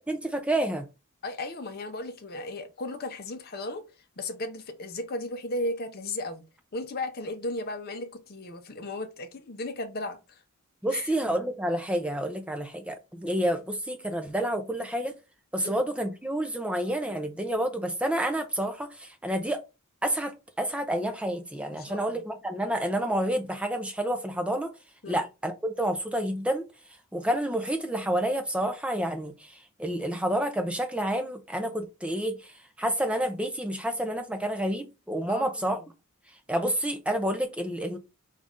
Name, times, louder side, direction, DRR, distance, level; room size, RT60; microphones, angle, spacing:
voice 1, 0.1-0.8 10.8-15.1 15.5-19.6 20.0-24.7 25.1-26.6 27.1-32.5 32.8-35.8 36.5-38.0, right 1 dB, 5° right, 0.4 m, -29 dB
voice 2, 1.2-3.8 4.2-6.4 6.7-10.4 10.9-11.2 15.6-15.8 21.7-22.2 25.0-25.2 35.3-35.9, left 2 dB, 45° left, 0.7 m, -35 dB
5.3 x 2.4 x 3.6 m
head